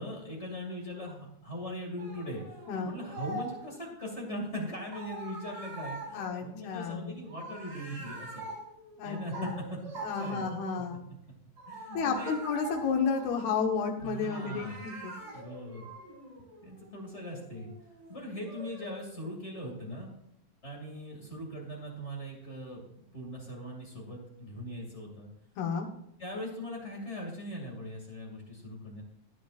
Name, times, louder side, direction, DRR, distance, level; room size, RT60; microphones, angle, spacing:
voice 1, 0.0-2.4 2.8-8.5 9.0-10.5 11.7-12.3 14.0-14.9 15.3-15.9 16.6-17.7 18.1-20.1 20.6-25.3 26.2-29.0, equal, 25° left, -1 dB, 1.9 m, -40 dB
sound 1, 2.0-3.8 4.9-10.8 11.6-13.9 14.3-19.4, right 2 dB, 40° right, 6.3 m, -44 dB
voice 2, 6.1-7.1 9.0-9.5 10.0-11.0 11.9-15.1 25.6-25.9, left 5 dB, 85° left, 2 dB, 3.3 m, -32 dB
15.5 x 10.0 x 2.5 m, 0.75 s
omnidirectional pair, 4.4 m